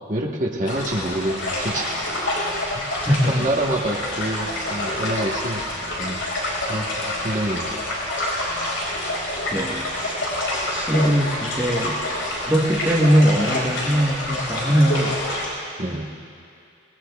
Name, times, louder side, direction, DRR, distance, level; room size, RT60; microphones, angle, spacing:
voice 1, 0.1-2.3 2.7-2.9 3.2-5.6 6.0-6.2 6.7-7.8 15.8-16.1, right 1 dB, 40° right, -1 dB, 1.2 m, -27 dB
sound 1, 0.6-15.5, left 1 dB, 80° left, 4.8 m, -27 dB
voice 2, 3.0-3.5 9.5-10.3 10.7-12.0 12.4-15.1 15.9-16.0, equal, 10° right, -3 dB, 1.2 m, -21 dB
26.0 x 20.0 x 2.3 m, 2.4 s
head